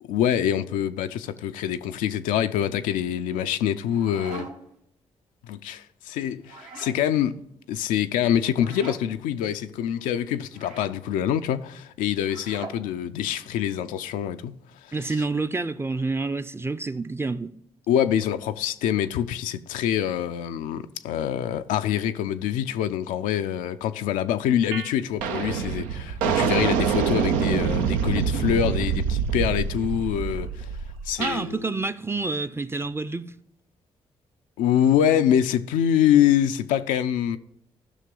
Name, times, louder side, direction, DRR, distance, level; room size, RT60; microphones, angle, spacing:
voice 1, 0.0-4.5 5.4-7.4 7.7-14.6 14.8-15.2 17.9-30.7 31.1-31.7 34.6-37.4, left 10 dB, 85° left, 0.4 m, -25 dB
sound 1, 3.7-4.8 6.4-7.0 8.5-9.0 10.5-10.9 12.2-12.8, right 4 dB, 70° right, 1.2 m, -41 dB
voice 2, 14.9-17.5 31.2-33.3, right 3 dB, 20° right, 0.5 m, -28 dB
sound 2, 24.7-24.9 25.2-31.4, right 7 dB, 90° right, 0.5 m, -25 dB
14.0 x 5.9 x 3.8 m
hypercardioid pair, 45°, 13 cm